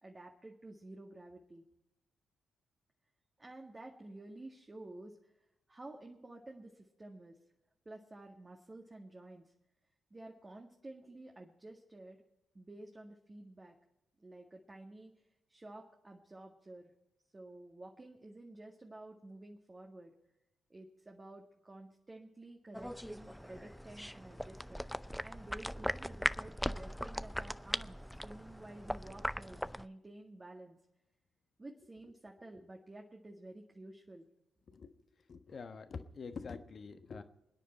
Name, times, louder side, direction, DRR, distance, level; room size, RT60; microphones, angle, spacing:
voice 1, 0.0-1.6 3.4-5.3 5.7-7.4 7.9-9.5 10.1-12.2 12.5-13.8 14.2-15.1 15.5-16.9 17.3-20.1 20.7-24.9 25.2-30.8 31.6-34.3, right 2 dB, 25° right, 1 dB, 1.8 m, -52 dB
sound 1, 22.7-29.9, equal, ahead, 0.5 m, -39 dB
voice 2, 35.3-37.2, left 5 dB, 50° left, 9 dB, 1.3 m, -46 dB
26.0 x 10.0 x 4.4 m, 0.91 s
hypercardioid pair, 40°, 0 cm